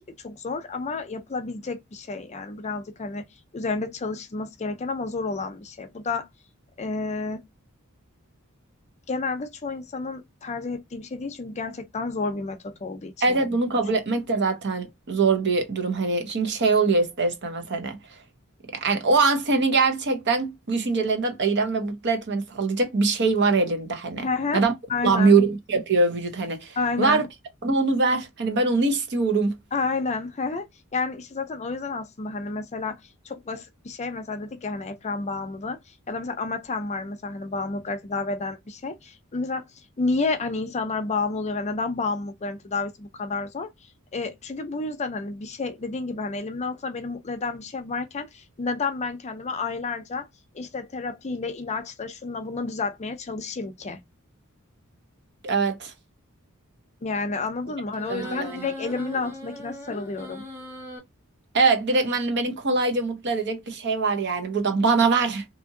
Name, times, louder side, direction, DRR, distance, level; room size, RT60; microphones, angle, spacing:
voice 1, 0.0-3.2 3.5-6.3 6.8-7.4 9.1-13.1 13.4-13.5 24.2-24.6 24.9-25.3 26.8-27.3 29.7-30.7 30.9-33.0 33.2-35.8 36.1-39.6 40.0-43.7 44.1-50.3 50.5-54.0 57.0-60.5, left 3 dB, 30° left, 0.5 m, -30 dB
voice 2, 13.2-18.0 18.8-24.3 24.5-24.7 25.0-27.3 27.6-29.6 55.4-55.9 58.1-58.6 61.5-65.4, right 3 dB, 55° right, 0.8 m, -23 dB
sound 1, 58.0-61.0, left 1 dB, 10° right, 1.2 m, -39 dB
2.7 x 2.6 x 2.6 m
head